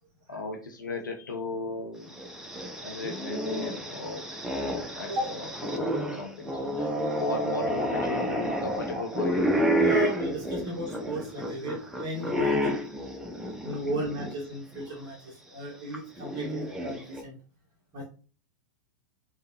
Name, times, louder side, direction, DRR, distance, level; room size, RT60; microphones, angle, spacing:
voice 1, 0.3-2.1 2.8-4.2 4.6-6.9 7.2-9.5 13.8-14.1, left 2 dB, 85° left, 2 dB, 0.8 m, -36 dB
sound 1, 2.1-14.3 14.8-14.9 15.9-17.2, equal, 5° right, 0.9 m, -30 dB
voice 2, 9.8-12.8 13.6-17.3 17.9-18.0, right 1 dB, 35° right, -2 dB, 1.9 m, -35 dB
3.8 x 3.4 x 3.1 m, 0.36 s
hypercardioid pair, 100°, 10 cm